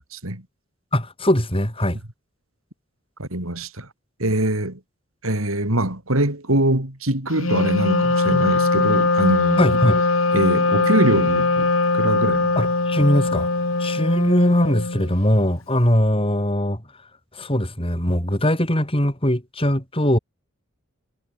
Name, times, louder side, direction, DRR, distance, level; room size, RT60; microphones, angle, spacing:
voice 1, 0.1-0.4 3.2-3.9 4.2-4.8 5.2-9.6 10.3-12.6, right 1 dB, 85° right, 5.3 m, -23 dB
voice 2, 0.9-2.0 9.6-10.1 12.6-13.5 13.8-16.8 17.3-20.2, equal, 25° left, 7.1 m, -20 dB
Wind instrument woodwind instrument, 7.3-15.2, left 3 dB, 75° left, 2.4 m, -21 dB
head